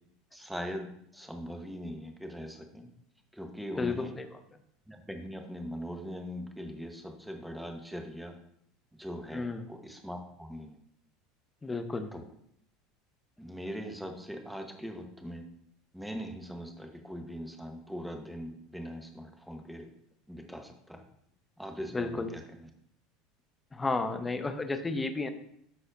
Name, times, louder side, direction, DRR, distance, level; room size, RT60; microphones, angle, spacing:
voice 1, 0.3-2.9 3.3-4.1 4.9-8.3 8.9-10.8 12.1-12.3 13.4-15.4 15.9-19.9 20.3-21.0 21.6-22.7, equal, ahead, 4 dB, 1.1 m, -41 dB
voice 2, 3.8-4.3 9.3-9.6 11.6-12.1 21.9-22.3 23.7-25.3, left 3 dB, 20° left, 8 dB, 0.7 m, -32 dB
11.5 x 4.2 x 2.6 m, 0.71 s
hypercardioid pair, 75°, 0 cm